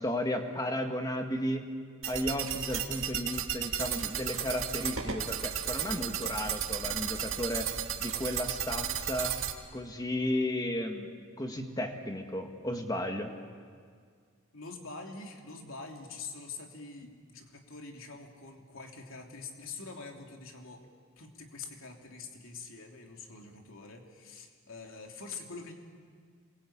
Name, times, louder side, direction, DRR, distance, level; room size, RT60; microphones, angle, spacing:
voice 1, 0.0-1.6 2.1-7.7 8.0-9.4 9.7-13.3, left 1 dB, 15° left, 4 dB, 1.9 m, -34 dB
sound 1, 2.0-9.5, right 9 dB, 65° right, 1.9 m, -34 dB
voice 2, 14.5-20.8 21.2-25.7, left 4 dB, 70° left, 2 dB, 3.1 m, -45 dB
27.0 x 22.0 x 8.9 m, 2.1 s
head